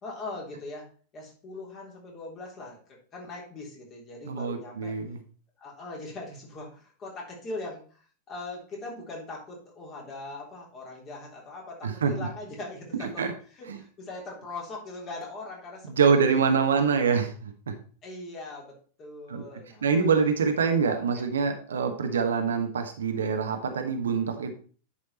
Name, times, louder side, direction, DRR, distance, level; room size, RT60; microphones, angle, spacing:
voice 1, 0.0-2.8 3.1-4.9 5.6-16.4 16.7-16.9 18.0-20.1 21.1-21.2, left 2 dB, 30° left, -1 dB, 3.4 m, -41 dB
voice 2, 4.2-5.2 12.0-12.1 13.2-13.3 13.7-13.8 15.9-17.7 19.3-19.4 19.8-24.5, right 5 dB, 65° right, 6 dB, 1.2 m, -25 dB
10.0 x 5.0 x 4.2 m, 0.41 s
figure-of-eight pair, 90°, 0 cm